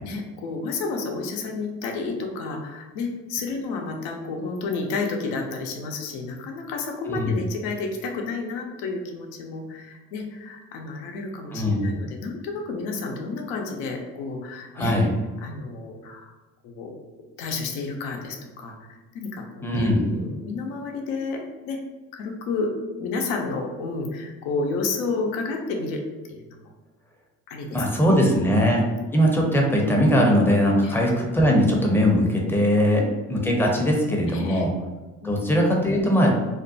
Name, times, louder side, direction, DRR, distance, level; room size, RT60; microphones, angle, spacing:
voice 1, 0.0-14.9 15.4-16.3 16.6-16.9 17.4-21.8 22.1-22.7 23.0-26.0 26.3-26.7 27.5-28.5 30.8-30.9 32.8-33.1 34.3-34.6 35.2-35.4, left 3 dB, 70° left, 2 dB, 0.6 m, -31 dB
voice 2, 11.5-11.9 14.8-15.1 19.6-20.0 27.7-28.8 29.1-33.0 33.3-34.7 35.2-36.3, equal, 5° left, -1 dB, 0.6 m, -20 dB
2.5 x 2.1 x 2.6 m, 1.2 s
hypercardioid pair, 50°, 40 cm